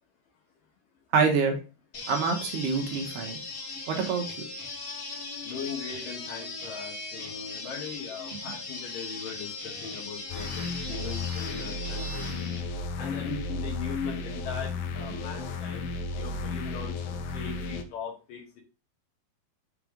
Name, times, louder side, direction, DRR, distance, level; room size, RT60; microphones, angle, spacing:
voice 1, 1.1-1.6 2.1-3.4 3.9-4.3, right 5 dB, 75° right, 2 dB, 3.1 m, -26 dB
sound 1, 1.9-12.6, left 3 dB, 45° left, 1.9 m, -39 dB
voice 2, 5.4-12.3 13.0-18.6, left 6 dB, 60° left, -1 dB, 2.7 m, -39 dB
sound 2, 10.3-17.8, left 3 dB, 80° left, 2.3 m, -34 dB
7.1 x 3.3 x 5.0 m, 0.31 s
omnidirectional pair, 4.9 m